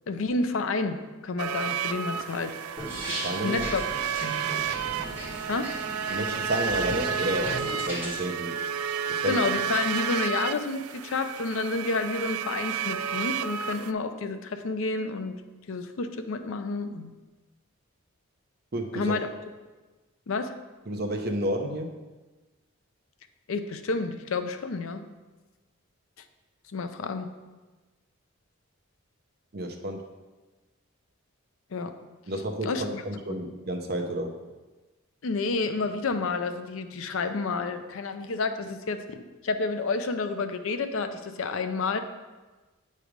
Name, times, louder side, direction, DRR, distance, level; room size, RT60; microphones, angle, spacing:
voice 1, 0.1-2.5 3.4-3.9 4.2-4.4 5.4-5.7 9.2-15.3 15.7-17.1 18.9-19.3 20.3-20.5 23.5-25.0 26.7-27.3 31.7-31.9 32.6-33.0 35.2-39.2 39.4-42.0, left 3 dB, 70° left, 8 dB, 0.5 m, -30 dB
sound 1, 1.4-13.9, right 7 dB, 90° right, 0.3 m, -31 dB
sound 2, 2.8-8.2, equal, 10° right, 2.3 m, -37 dB
voice 2, 3.2-3.7 6.1-7.5 7.9-8.6 9.2-9.4 18.7-19.2 20.9-21.9 29.5-30.0 32.3-34.3, right 1 dB, 45° right, 3 dB, 0.7 m, -30 dB
9.0 x 3.3 x 5.0 m, 1.2 s
head